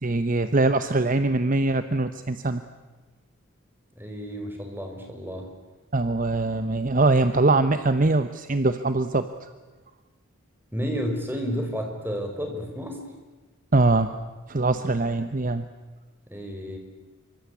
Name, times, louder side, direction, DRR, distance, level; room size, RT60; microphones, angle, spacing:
voice 1, 0.0-2.6 5.9-9.3 13.7-14.1 14.5-15.7, right 2 dB, 40° right, 10 dB, 1.0 m, -22 dB
voice 2, 3.9-5.5 10.7-13.0 16.3-16.8, equal, 10° right, 3 dB, 5.0 m, -31 dB
26.0 x 24.5 x 8.4 m, 1.3 s
head